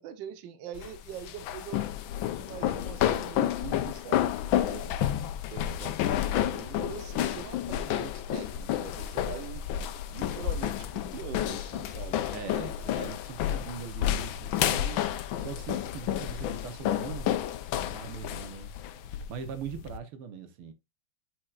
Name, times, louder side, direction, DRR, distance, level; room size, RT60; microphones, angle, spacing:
voice 1, 0.0-1.8 2.3-5.2 5.5-6.2 6.5-9.6 10.1-12.2, right 9 dB, 65° right, 1.5 m, -43 dB
sound 1, 0.7-20.0, left 11 dB, 75° left, 1.3 m, -30 dB
voice 2, 12.3-17.3 17.8-18.7 19.1-20.7, right 7 dB, 85° right, 1.9 m, -41 dB
8.9 x 4.5 x 2.4 m
omnidirectional pair, 2.3 m